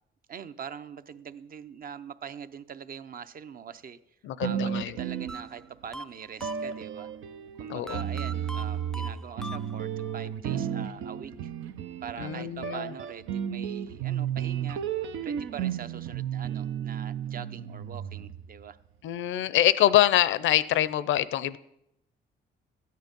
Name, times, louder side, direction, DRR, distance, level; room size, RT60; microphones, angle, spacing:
voice 1, 0.3-4.0 4.4-7.1 7.6-11.5 12.0-14.8 15.2-18.8, right 7 dB, 45° right, 12 dB, 0.7 m, -43 dB
voice 2, 4.2-5.0 7.7-8.0 12.2-12.9 19.0-21.6, left 12 dB, 75° left, 17 dB, 0.6 m, -25 dB
sound 1, 4.4-5.9 6.4-18.6, right 9 dB, 85° right, 0.7 m, -33 dB
sound 2, 5.3-7.1 7.9-10.1, right 1 dB, 5° left, 0.3 m, -42 dB
13.5 x 9.4 x 5.3 m, 0.82 s
cardioid pair, 90°, 20 cm